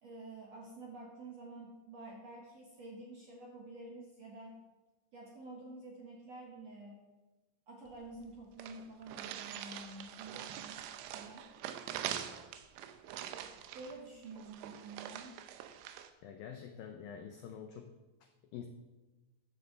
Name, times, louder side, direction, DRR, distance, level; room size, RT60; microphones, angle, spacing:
voice 1, 0.0-4.6 5.1-7.0 7.7-11.5 13.7-15.4, right 2 dB, 55° right, -2 dB, 1.9 m, -49 dB
sound 1, 7.9-8.0 8.2-8.3 8.6-16.1, right 10 dB, 90° right, 3.1 m, -44 dB
voice 2, 16.2-18.0 18.5-18.7, left 8 dB, 85° left, 6 dB, 2.0 m, -46 dB
12.0 x 6.7 x 7.6 m, 1.1 s
omnidirectional pair, 5.0 m